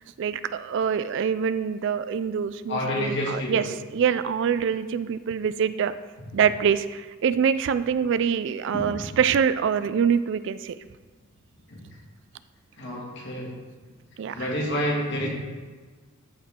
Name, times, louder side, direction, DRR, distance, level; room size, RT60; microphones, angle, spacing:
voice 1, 0.2-3.6 3.9-5.9 6.3-10.7 14.2-14.5, right 7 dB, 60° right, 13 dB, 0.3 m, -25 dB
voice 2, 2.7-3.7 8.7-9.1 11.7-11.9 12.8-13.5 14.3-15.3, left 1 dB, 60° left, -2 dB, 1.9 m, -29 dB
13.5 x 4.7 x 3.6 m, 1.4 s
head